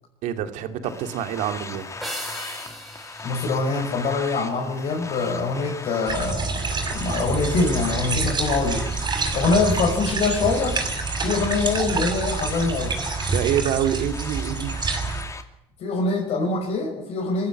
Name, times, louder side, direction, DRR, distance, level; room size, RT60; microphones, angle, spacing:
voice 1, 0.2-1.9 13.3-14.8, right 10 dB, 75° right, 7 dB, 2.5 m, -26 dB
sound 1, 0.8-15.4, left 3 dB, 25° left, 2.5 m, -38 dB
sound 2, 2.0-4.6, equal, ahead, 5.9 m, -38 dB
voice 2, 3.2-8.8 9.3-10.8 11.2-12.9 15.8-17.5, left 4 dB, 60° left, -1 dB, 5.9 m, -24 dB
sound 3, 6.1-15.2, right 4 dB, 35° right, 6.2 m, -27 dB
22.5 x 16.0 x 10.0 m, 0.84 s
supercardioid pair, 90°, 13 cm